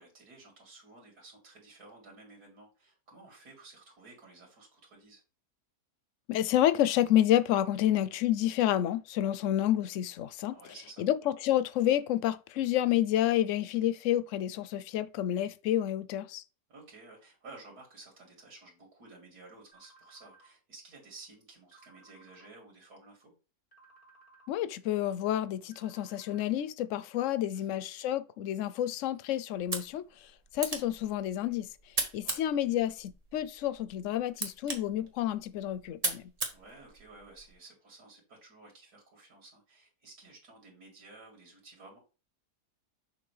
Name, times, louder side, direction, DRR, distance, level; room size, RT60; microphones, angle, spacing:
voice 1, 0.0-5.2 10.5-11.0 16.7-23.3 27.5-27.8 32.2-32.4 36.4-42.0, right 3 dB, 75° right, 2.6 m, -53 dB
voice 2, 6.3-16.4 24.5-30.3 30.5-31.7 32.1-36.2, left 12 dB, 65° left, 0.8 m, -29 dB
sound 1, 19.7-20.5 21.7-22.5 23.7-24.5 25.7-26.5, right 3 dB, 25° left, 1.8 m, -59 dB
sound 2, 29.5-37.5, right 3 dB, 25° right, 1.3 m, -39 dB
6.9 x 5.4 x 3.3 m
omnidirectional pair, 1.7 m